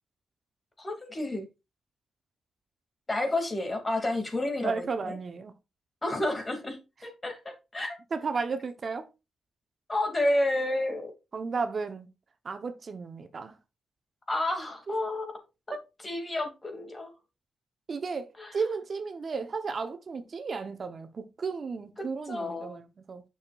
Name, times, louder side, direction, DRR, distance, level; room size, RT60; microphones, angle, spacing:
voice 1, 0.8-1.5 3.1-5.2 6.0-8.0 9.9-11.1 14.3-15.4 16.0-17.1 18.4-18.6 22.3-22.8, left 1 dB, 30° left, 2.5 m, -30 dB
voice 2, 4.6-5.5 8.1-9.1 11.3-12.1 12.4-13.6 14.9-15.0 15.7-15.8 17.9-23.2, right 4 dB, 50° right, 1.0 m, -34 dB
8.5 x 6.4 x 2.5 m
cardioid pair, 70°, 0 cm